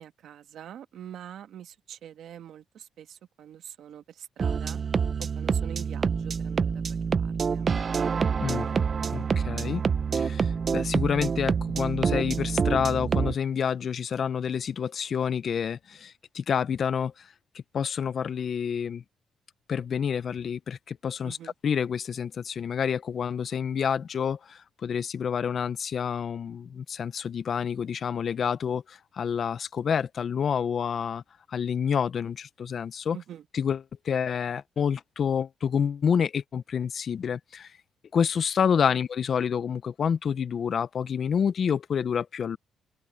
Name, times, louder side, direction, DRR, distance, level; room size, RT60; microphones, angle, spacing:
voice 1, 0.0-4.8 5.2-7.7 8.6-8.9 21.2-21.5 33.1-33.4 38.9-39.0, right 10 dB, 70° right, 1.3 m, -45 dB
sound 1, 4.4-13.3, right 6 dB, 40° right, 0.7 m, -27 dB
voice 2, 9.1-9.8 10.1-19.0 19.7-21.4 21.6-31.2 31.5-33.2 33.5-37.8 38.1-42.6, left 7 dB, 50° left, 0.6 m, -28 dB
cardioid pair, 90°, 0 cm